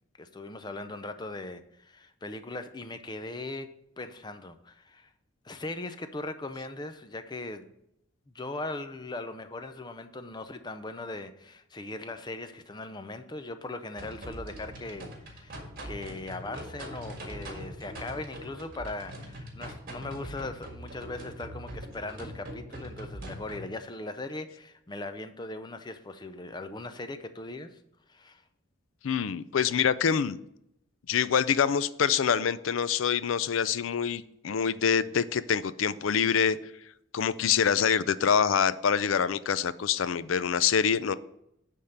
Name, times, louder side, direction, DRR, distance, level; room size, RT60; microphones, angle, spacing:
voice 1, 0.2-3.7 4.0-5.1 5.4-7.7 8.3-27.8 28.1-28.4, left 2 dB, 20° left, 9 dB, 0.5 m, -39 dB
sound 1, 14.0-23.7, right 1 dB, 45° right, 1.7 m, -42 dB
voice 2, 29.0-30.4 31.1-36.6 37.1-41.1, left 7 dB, 80° left, 16 dB, 0.4 m, -25 dB
9.9 x 3.6 x 6.5 m, 0.77 s
head